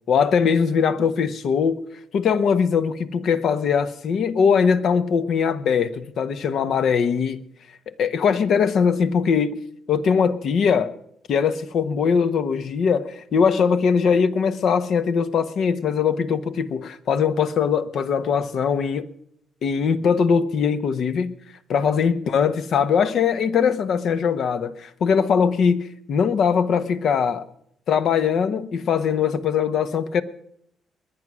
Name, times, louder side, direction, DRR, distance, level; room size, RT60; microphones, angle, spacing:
voice 1, 0.1-1.8 2.1-7.4 7.9-9.6 9.9-10.9 11.3-19.1 19.6-21.4 21.7-27.4 27.9-30.2, left 6 dB, 65° left, 1.0 m, -21 dB
21.0 x 9.8 x 6.2 m
cardioid pair, 90°, 0 cm